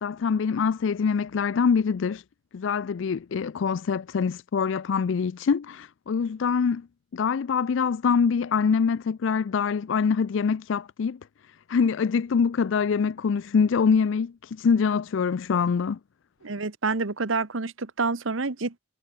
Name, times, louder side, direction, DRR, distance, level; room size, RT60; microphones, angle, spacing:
voice 1, 0.0-2.2 2.5-6.9 7.1-11.2 11.7-16.0, left 6 dB, 65° left, 0.4 m, -24 dB
voice 2, 16.4-18.8, right 4 dB, 75° right, 1.3 m, -28 dB
head